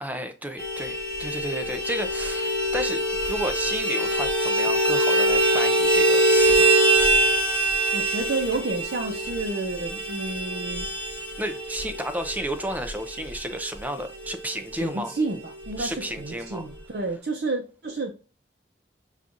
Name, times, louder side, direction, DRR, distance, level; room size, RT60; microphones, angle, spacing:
voice 1, 0.0-6.8 11.4-15.2 15.8-16.7, right 1 dB, 10° right, 0.4 m, -32 dB
Vehicle horn car horn honking, 0.6-14.5 14.8-14.9 15.2-15.4 15.6-16.3, right 1 dB, 5° left, 1.1 m, -24 dB
voice 2, 7.9-10.9 14.7-15.4 15.7-18.1, right 3 dB, 65° right, 0.6 m, -30 dB
6.9 x 2.4 x 2.5 m
head